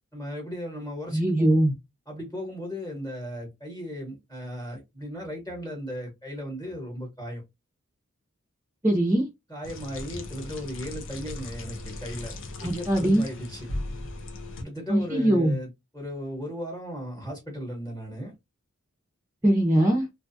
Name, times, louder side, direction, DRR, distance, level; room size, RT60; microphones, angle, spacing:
voice 1, 0.1-1.5 2.1-7.4 9.5-12.3 12.6-13.7 14.6-18.3, equal, 15° left, 1.1 m, -36 dB
voice 2, 1.1-1.7 8.8-9.3 12.6-13.2 14.9-15.6 19.4-20.0, right 1 dB, 15° right, 0.6 m, -21 dB
sound 1, 9.6-14.6, left 2 dB, 65° left, 0.7 m, -37 dB
2.6 x 2.3 x 2.5 m
head